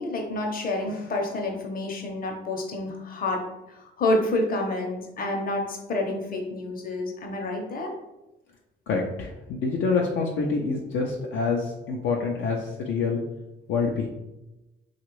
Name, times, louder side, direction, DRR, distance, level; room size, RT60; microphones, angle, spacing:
voice 1, 0.0-3.4 3.7-7.9, left 2 dB, 45° left, 1 dB, 0.8 m, -28 dB
voice 2, 8.9-13.2 13.7-14.1, left 4 dB, 75° left, -1 dB, 0.5 m, -26 dB
3.0 x 2.4 x 3.0 m, 0.97 s
cardioid pair, 90°, 20 cm